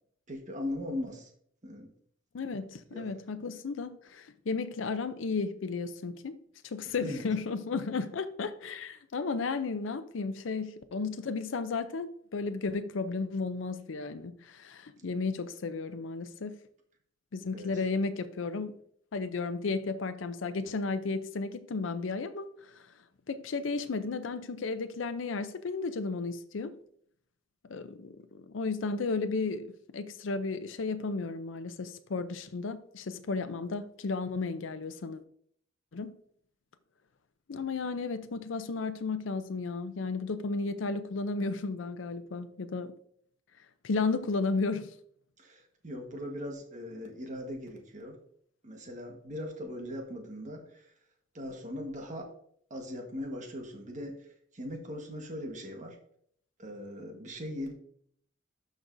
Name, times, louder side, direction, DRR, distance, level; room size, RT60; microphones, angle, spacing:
voice 1, 0.3-1.3 1.6-1.9 2.9-3.1 6.9-7.3 15.0-15.1 17.5-17.7 45.4-48.2 48.6-50.9 51.3-52.3 52.7-54.3 54.5-56.0 56.6-57.7, left 1 dB, 40° right, 1.4 m, -39 dB
voice 2, 2.3-16.6 17.3-18.8 19.1-22.9 23.3-26.8 27.7-35.2 35.9-36.2 37.5-42.9 43.8-44.9, left 4 dB, 85° left, 0.5 m, -34 dB
12.0 x 5.2 x 2.6 m
head